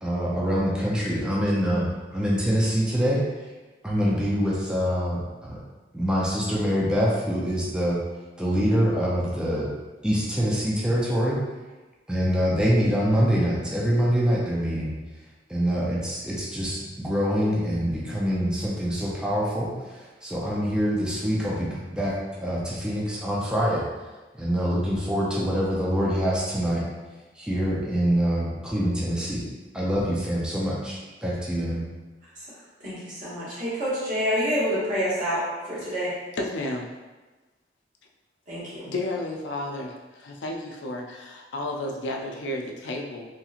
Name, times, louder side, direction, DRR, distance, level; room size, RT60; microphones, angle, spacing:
voice 1, 0.0-3.2 3.8-5.6 5.9-8.0 8.4-9.7 10.0-11.4 12.1-14.9 15.5-22.2 22.4-23.8 24.3-26.8 27.4-29.4 29.7-31.8, equal, 5° right, -6 dB, 0.4 m, -25 dB
voice 2, 32.8-36.1 38.5-38.9, equal, 50° right, -8 dB, 1.2 m, -27 dB
voice 3, 36.4-36.9 38.9-39.9 40.2-43.3, left 2 dB, 85° left, 0 dB, 0.4 m, -32 dB
2.9 x 2.8 x 2.4 m, 1.2 s
head